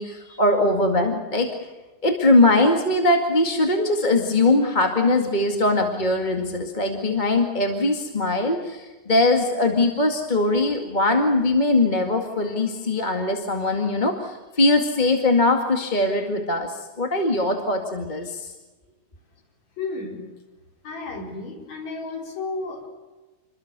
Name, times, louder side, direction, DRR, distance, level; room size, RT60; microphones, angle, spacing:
voice 1, 0.0-1.5 2.0-18.5, left 2 dB, 20° left, 3 dB, 1.8 m, -21 dB
voice 2, 19.8-20.2 20.8-22.9, left 3 dB, 65° left, 1 dB, 5.8 m, -32 dB
28.5 x 22.5 x 6.8 m, 1.2 s
omnidirectional pair, 3.4 m